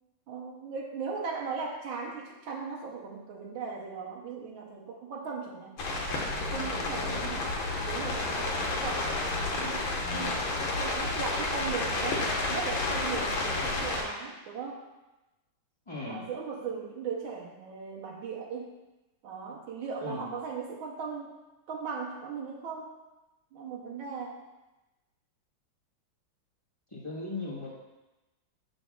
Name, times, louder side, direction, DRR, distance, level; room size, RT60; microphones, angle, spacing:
voice 1, 0.3-5.8 6.4-7.5 7.8-14.8 16.1-18.7 19.2-21.4 21.7-23.0 23.5-24.4, right 5 dB, 85° right, -2 dB, 1.5 m, -38 dB
sound 1, 5.8-14.0, left 2 dB, 85° left, 1.8 m, -31 dB
voice 2, 6.9-7.4 13.5-13.8 15.9-16.2 20.0-20.3 26.9-27.7, left 2 dB, 20° left, -6 dB, 1.0 m, -38 dB
7.1 x 6.4 x 2.3 m, 1.0 s
omnidirectional pair, 2.1 m